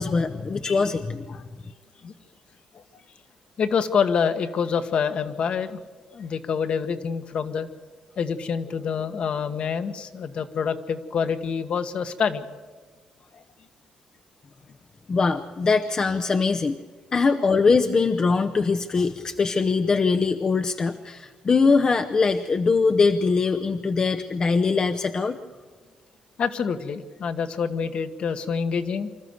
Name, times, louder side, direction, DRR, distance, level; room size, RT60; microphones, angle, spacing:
voice 1, 0.0-1.2 15.1-16.7 17.1-25.4, left 4 dB, 35° left, 6 dB, 0.8 m, -22 dB
voice 2, 3.6-5.8 6.1-7.7 8.2-12.4 26.4-29.1, left 6 dB, 55° left, 8 dB, 1.4 m, -26 dB
25.5 x 13.5 x 8.0 m, 1.5 s
cardioid pair, 125°, 2 cm